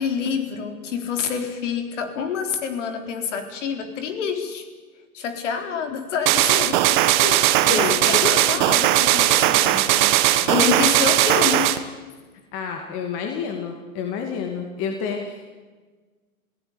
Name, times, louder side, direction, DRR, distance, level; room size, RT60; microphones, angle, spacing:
voice 1, 0.0-4.7 5.1-7.0 7.3-10.1 10.5-11.7, left 6 dB, 55° left, 6 dB, 4.1 m, -28 dB
sound 1, 6.3-11.8, right 14 dB, 35° right, 1.3 m, -18 dB
voice 2, 7.7-8.8 10.5-10.6 12.5-15.4, left 6 dB, 30° left, 3 dB, 2.4 m, -29 dB
26.5 x 17.5 x 9.7 m, 1.4 s
hypercardioid pair, 155°, 44 cm